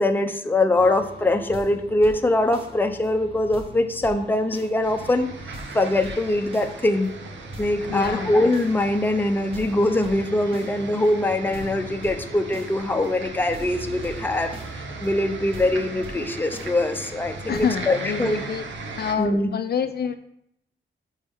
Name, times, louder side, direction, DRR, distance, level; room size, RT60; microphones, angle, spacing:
voice 1, 0.0-5.3 5.7-7.1 7.6-18.4 19.2-19.5, left 1 dB, 10° left, 5 dB, 0.6 m, -23 dB
sound 1, 0.7-17.9, right 1 dB, 30° right, 1.3 m, -42 dB
sound 2, 4.8-19.2, right 3 dB, 80° right, 0.9 m, -38 dB
voice 2, 7.9-8.4 17.5-18.6 19.0-20.2, left 7 dB, 55° left, 9 dB, 0.4 m, -27 dB
6.7 x 5.4 x 3.5 m, 0.76 s
wide cardioid pair, 110°, 19 cm